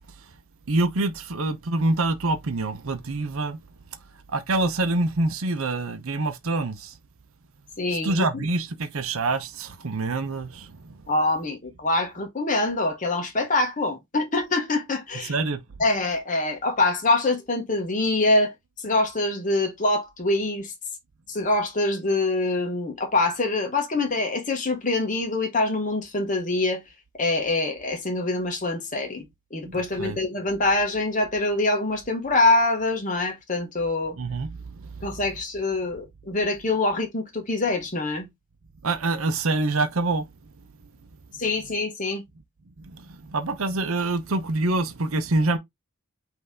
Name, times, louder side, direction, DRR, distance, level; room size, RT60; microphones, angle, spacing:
voice 1, 0.7-3.6 4.3-6.9 8.0-10.9 15.2-15.6 29.7-30.2 34.2-35.2 38.8-40.2 42.8-45.6, right 2 dB, 70° right, 0.7 m, -26 dB
voice 2, 7.8-8.5 11.1-15.3 15.8-20.7 21.3-26.8 27.2-29.3 29.5-34.2 35.0-38.3 41.4-42.2, left 2 dB, 35° left, 0.9 m, -25 dB
5.5 x 2.7 x 3.5 m
head